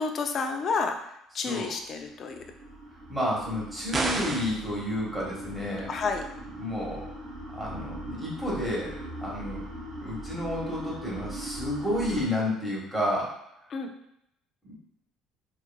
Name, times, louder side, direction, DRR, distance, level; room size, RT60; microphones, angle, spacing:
voice 1, 0.0-2.4 5.9-6.3 13.7-13.9, left 4 dB, 45° left, 5 dB, 0.4 m, -30 dB
sound 1, 1.9-12.2, right 1 dB, 65° right, 1.0 m, -40 dB
voice 2, 3.1-5.9 6.5-7.1 7.5-8.9 9.2-9.6 10.0-13.4 14.6-14.8, left 1 dB, 5° right, -5 dB, 1.2 m, -31 dB
sound 2, 3.9-4.7, right 2 dB, 30° right, 0.4 m, -29 dB
4.6 x 2.4 x 2.3 m, 0.77 s
cardioid pair, 115°, 0 cm